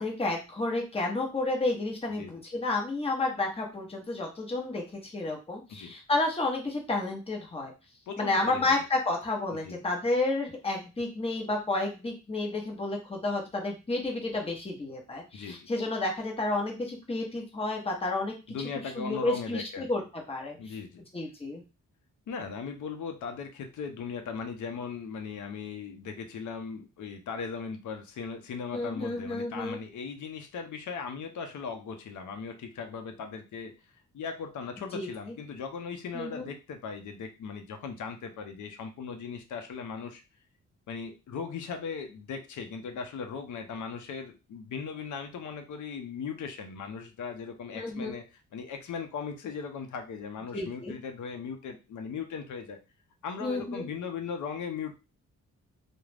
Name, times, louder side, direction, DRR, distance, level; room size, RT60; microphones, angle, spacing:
voice 1, 0.0-7.7 8.2-18.3 19.0-20.0 20.3-20.6 21.1-21.6 28.7-29.8 34.9-35.1 36.1-36.5 47.7-48.1 50.5-50.9 53.4-53.9, left 2 dB, 20° left, 0 dB, 0.8 m, -31 dB
voice 2, 2.1-2.4 5.7-5.9 8.1-8.7 9.5-9.8 15.3-15.7 18.5-19.9 20.6-21.0 22.3-33.7 34.1-40.2 40.9-48.2 48.5-52.8 53.2-54.9, left 5 dB, 65° left, 6 dB, 0.6 m, -38 dB
2.3 x 2.1 x 3.2 m, 0.29 s
cardioid pair, 80°, 32 cm